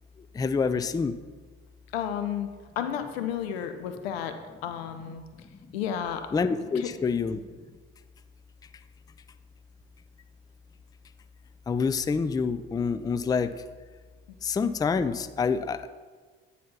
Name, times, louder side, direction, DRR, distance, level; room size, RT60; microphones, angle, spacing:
voice 1, 0.3-1.2 6.3-7.5 11.7-13.5 14.4-15.9, left 5 dB, 15° left, 12 dB, 0.4 m, -27 dB
voice 2, 1.9-2.5 2.8-5.2 5.7-6.3 6.7-6.9, left 9 dB, 85° left, 8 dB, 0.7 m, -32 dB
9.3 x 4.2 x 5.4 m, 1.4 s
hypercardioid pair, 60°, 30 cm